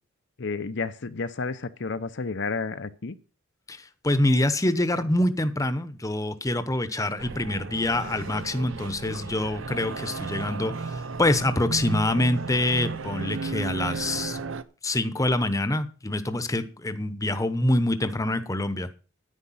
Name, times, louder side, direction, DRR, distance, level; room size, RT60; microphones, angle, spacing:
voice 1, 0.4-3.2, left 4 dB, 60° left, 12 dB, 0.8 m, -31 dB
voice 2, 3.7-14.4 14.8-18.9, left 1 dB, 15° left, 11 dB, 0.9 m, -25 dB
sound 1, 7.2-14.6, right 4 dB, 70° right, 0.8 m, -34 dB
10.0 x 9.7 x 5.8 m, 0.35 s
head